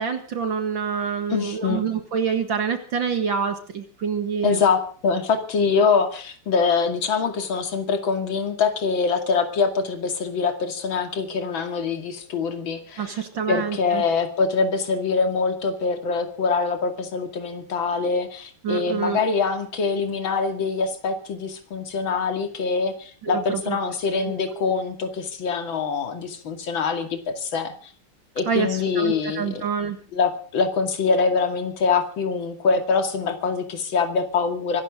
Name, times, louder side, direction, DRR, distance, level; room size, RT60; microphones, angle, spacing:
voice 1, 0.0-4.6 13.0-14.0 18.6-19.2 23.2-23.8 24.1-24.6 28.5-30.0, right 6 dB, 60° right, 7 dB, 2.5 m, -27 dB
voice 2, 1.3-1.9 4.4-27.9 28.4-29.7 30.1-34.8, left 5 dB, 60° left, 6 dB, 3.1 m, -24 dB
24.5 x 13.5 x 3.8 m, 0.43 s
omnidirectional pair, 2.4 m